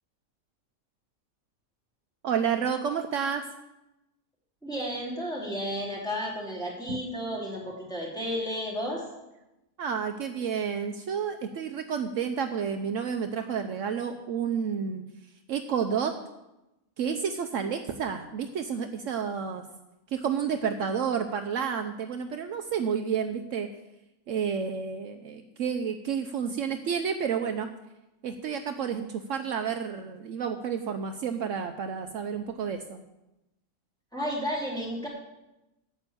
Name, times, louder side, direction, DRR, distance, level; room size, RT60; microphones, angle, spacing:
voice 1, 2.2-3.4 6.9-7.0 9.8-15.0 15.5-16.1 17.0-19.6 20.1-23.7 24.3-27.7 28.2-33.0, right 7 dB, 70° right, 7 dB, 1.0 m, -30 dB
voice 2, 4.6-9.0 34.1-35.1, equal, 5° left, -4 dB, 3.0 m, -32 dB
8.9 x 7.1 x 8.7 m, 0.96 s
omnidirectional pair, 1.4 m